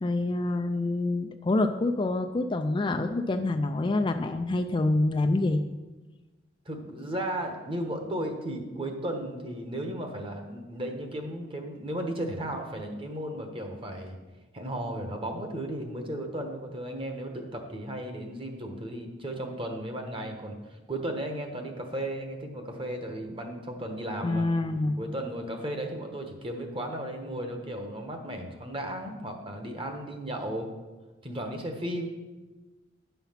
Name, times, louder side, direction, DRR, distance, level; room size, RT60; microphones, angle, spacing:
voice 1, 0.0-5.6 24.2-25.0, left 2 dB, 25° left, 5 dB, 0.4 m, -26 dB
voice 2, 6.6-14.2 14.5-24.5 25.0-30.7 31.2-32.1, right 1 dB, 30° right, 4 dB, 1.2 m, -35 dB
10.0 x 5.7 x 5.7 m, 1.2 s
head